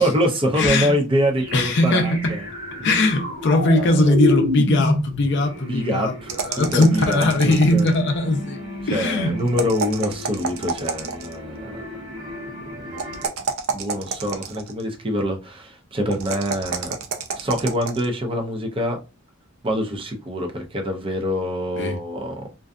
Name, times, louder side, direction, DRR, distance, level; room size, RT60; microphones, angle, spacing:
voice 1, 0.0-2.4 3.8-3.9 5.6-6.1 6.6-7.9 8.9-11.8 12.7-13.0 13.7-17.0 17.3-19.0 19.6-22.3, equal, 25° right, 0.5 m, -25 dB
voice 2, 0.5-0.9 1.5-2.4 2.8-8.6 8.9-9.4 21.8-22.0, left 2 dB, 55° left, 0.5 m, -20 dB
sound 1, 1.4-13.3, left 1 dB, 60° right, 1.2 m, -30 dB
sound 2, 6.3-8.1 9.5-11.4 13.0-14.8 16.1-18.1, right 5 dB, 75° right, 0.5 m, -29 dB
2.5 x 2.3 x 2.4 m
head